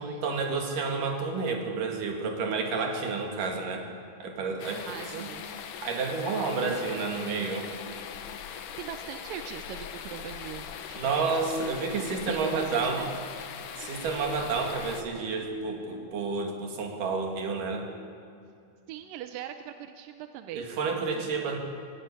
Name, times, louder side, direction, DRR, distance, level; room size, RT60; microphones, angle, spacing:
voice 1, 0.0-3.9 4.2-4.9 5.1-5.3 5.8-7.7 11.0-13.0 13.8-17.9 20.5-21.6, right 4 dB, 60° right, 2 dB, 3.6 m, -30 dB
sound 1, 4.6-15.0, left 8 dB, 70° left, 2.4 m, -41 dB
voice 2, 4.9-5.6 8.5-11.6 12.1-13.2 18.9-20.7 21.1-21.6, right 10 dB, 80° right, 8 dB, 2.2 m, -41 dB
18.5 x 18.0 x 8.5 m, 2.3 s
omnidirectional pair, 4.5 m